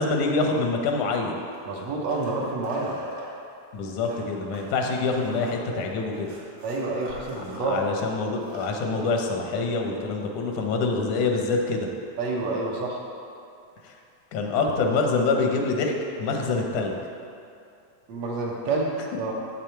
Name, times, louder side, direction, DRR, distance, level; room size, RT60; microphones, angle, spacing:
voice 1, 0.0-1.4 3.7-6.3 7.7-11.9 13.8-13.9 14.3-15.9 16.2-17.0, left 3 dB, 90° left, 2 dB, 2.3 m, -25 dB
sound 1, 1.4-3.3 3.9-7.6 8.0-8.1 8.3-9.1 10.6-10.7, right 2 dB, 85° right, 3.1 m, -42 dB
voice 2, 1.7-3.0 6.6-7.8 12.2-13.0 18.1-19.3, right 3 dB, 65° right, -2 dB, 2.0 m, -28 dB
7.9 x 7.0 x 4.5 m, 2.5 s
omnidirectional pair, 3.3 m